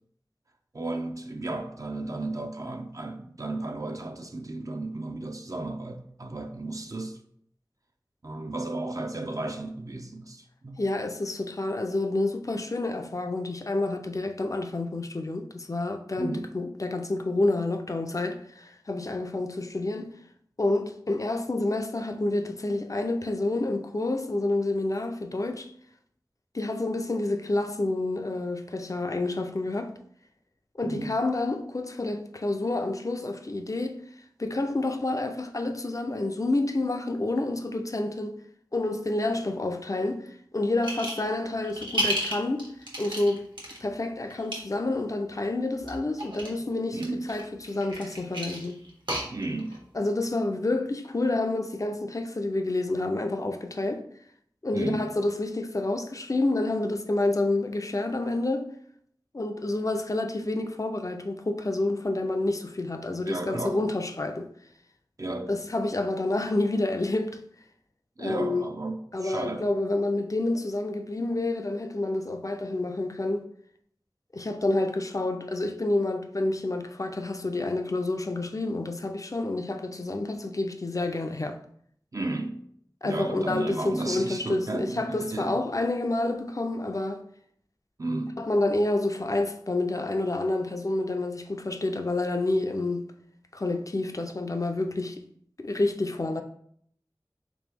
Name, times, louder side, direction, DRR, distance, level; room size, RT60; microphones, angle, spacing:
voice 1, 0.7-7.2 8.2-10.8 16.2-16.5 30.8-31.1 46.9-47.3 49.3-49.8 54.7-55.1 63.2-63.8 65.2-65.6 68.2-69.7 82.1-82.6 83.0-85.6 88.0-88.4, right 2 dB, 45° right, 0.4 m, -33 dB
voice 2, 10.8-20.1 20.6-25.7 26.5-29.9 30.7-34.0 34.4-38.4 38.7-42.7 43.0-43.5 43.8-48.8 49.9-54.1 54.6-58.7 59.3-64.5 65.5-67.4 68.2-68.6 69.1-73.5 74.3-81.6 83.0-87.2 88.4-93.1 93.5-95.2 95.6-96.4, left 2 dB, 45° left, 0.4 m, -28 dB
sound 1, 40.8-41.3 41.6-43.8 44.3-44.6 45.8-46.5 47.0-49.8, right 1 dB, 75° right, 1.0 m, -32 dB
3.4 x 3.0 x 3.4 m
wide cardioid pair, 40°, 8 cm